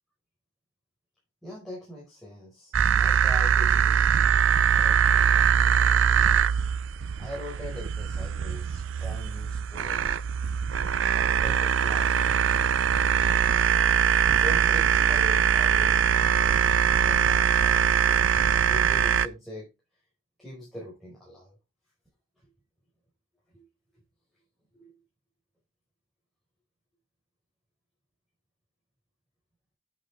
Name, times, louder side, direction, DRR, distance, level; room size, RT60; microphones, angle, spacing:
voice 1, 1.4-4.1 4.7-6.5 7.2-10.2 11.1-13.0 14.2-19.7 20.4-21.6 23.5-23.6 24.7-24.9, left 1 dB, ahead, 4.8 m, -42 dB
sound 1, 2.7-19.3, right 8 dB, 70° right, 0.5 m, -22 dB
9.2 x 8.8 x 3.5 m
head